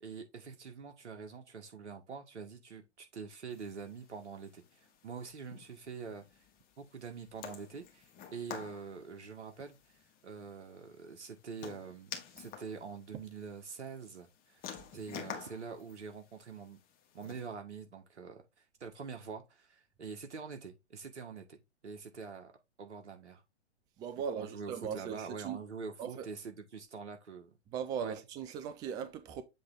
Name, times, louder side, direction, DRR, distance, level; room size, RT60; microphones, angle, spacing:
voice 1, 0.0-6.4 6.8-14.6 14.9-16.8 17.1-18.4 18.8-22.5 22.8-23.4 24.2-27.6 28.0-28.1, right 5 dB, 75° right, 1.9 m, -45 dB
sound 1, 3.5-17.5, left 8 dB, 25° left, 1.4 m, -51 dB
voice 2, 24.0-25.6 26.0-26.3 27.7-29.4, right 7 dB, 10° right, 0.4 m, -38 dB
7.7 x 3.3 x 3.8 m
hypercardioid pair, 120°, 35 cm